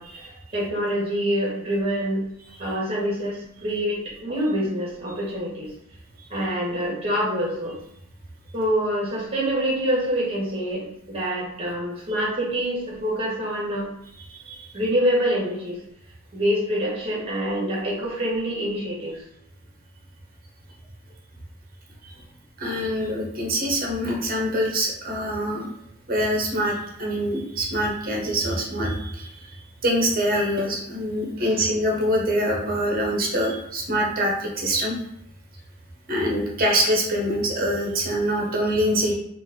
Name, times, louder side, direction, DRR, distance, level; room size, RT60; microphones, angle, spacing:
voice 1, 0.0-2.3 2.6-5.7 6.3-7.8 8.5-13.9 14.7-15.8 16.3-19.2 31.4-31.6, equal, 25° right, -4 dB, 1.5 m, -26 dB
voice 2, 14.3-14.7 22.0-22.1 22.6-25.7 26.1-35.0 36.1-39.1, equal, 40° right, -1 dB, 1.0 m, -25 dB
4.2 x 2.6 x 3.7 m, 0.74 s
head